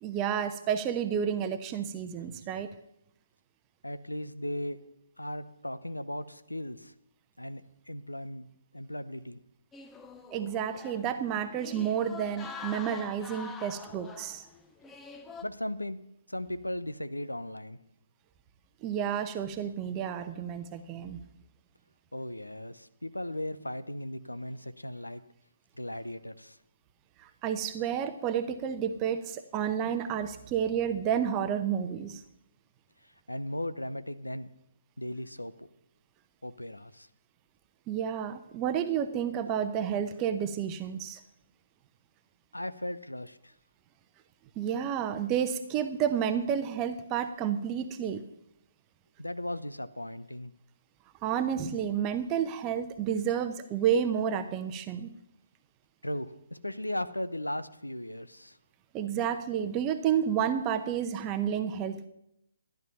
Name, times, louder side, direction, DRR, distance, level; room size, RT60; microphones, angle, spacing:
voice 1, 0.0-2.7 10.3-14.4 18.8-21.2 27.4-32.2 37.9-41.2 44.6-48.2 51.2-55.1 58.9-62.1, right 8 dB, 20° right, 9 dB, 0.8 m, -30 dB
voice 2, 3.8-4.8 5.2-6.9 7.4-7.6 7.9-8.4 8.7-9.4 15.4-16.0 16.3-17.8 22.1-25.2 25.8-26.6 33.3-34.5 35.0-35.7 36.4-37.1 39.4-39.6 42.5-43.5 49.2-50.5 56.0-58.6, left 1 dB, 85° left, 13 dB, 0.8 m, -37 dB
sound 1, 9.7-15.4, left 4 dB, 10° left, 0.7 m, -45 dB
14.0 x 10.5 x 5.6 m, 0.78 s
figure-of-eight pair, 135°, 0 cm